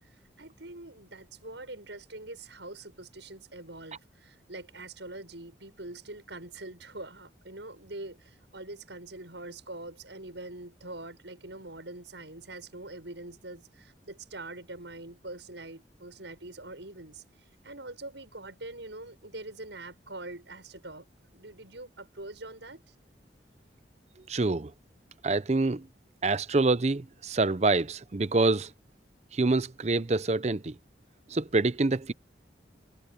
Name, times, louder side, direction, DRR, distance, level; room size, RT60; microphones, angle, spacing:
voice 1, 0.0-21.1 21.3-22.9, right 2 dB, 80° right, 6.8 m, -44 dB
voice 2, 24.3-24.7 25.2-25.9 26.2-28.7 29.3-30.8 31.3-32.1, right 3 dB, 35° right, 0.6 m, -26 dB
head